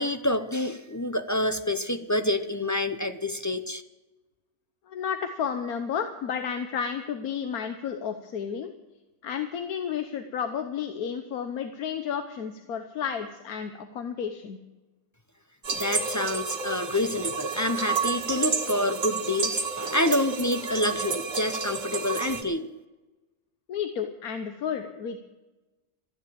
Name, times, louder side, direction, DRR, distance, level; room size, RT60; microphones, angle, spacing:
voice 1, 0.0-3.8 15.7-22.7, left 1 dB, 25° left, 8 dB, 0.4 m, -27 dB
voice 2, 4.9-8.7 9.2-14.6 23.7-25.2, left 7 dB, 85° left, 7 dB, 1.4 m, -32 dB
sound 1, 15.6-22.4, right 5 dB, 60° right, 1.8 m, -30 dB
14.0 x 10.0 x 8.7 m, 1.1 s
omnidirectional pair, 1.5 m